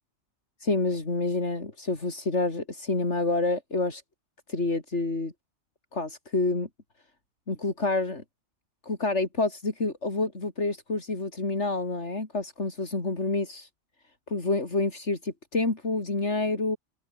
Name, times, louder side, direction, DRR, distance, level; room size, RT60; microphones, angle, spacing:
voice 1, 0.6-4.0 4.5-5.3 5.9-6.7 7.5-8.2 8.8-13.7 14.3-16.8, left 2 dB, 75° left, 4.1 m, -28 dB
open air
omnidirectional pair, 1.2 m